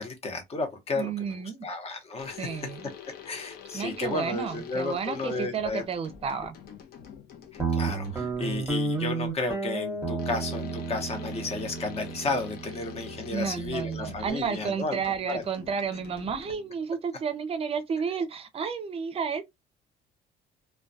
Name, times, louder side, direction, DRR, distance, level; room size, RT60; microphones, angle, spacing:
voice 1, 0.0-1.1 1.6-2.5 3.2-5.8 7.5-15.0 15.3-15.4, left 3 dB, 35° left, 0.8 m, -33 dB
voice 2, 0.9-1.7 2.4-2.9 3.7-6.5 13.3-19.5, right 6 dB, 35° right, 0.5 m, -31 dB
sound 1, 2.2-8.8 10.2-16.8, left 8 dB, 65° left, 0.6 m, -46 dB
Guitar, 7.6-14.3, right 4 dB, 10° right, 0.8 m, -32 dB
2.2 x 2.2 x 2.5 m
cardioid pair, 110°, 17 cm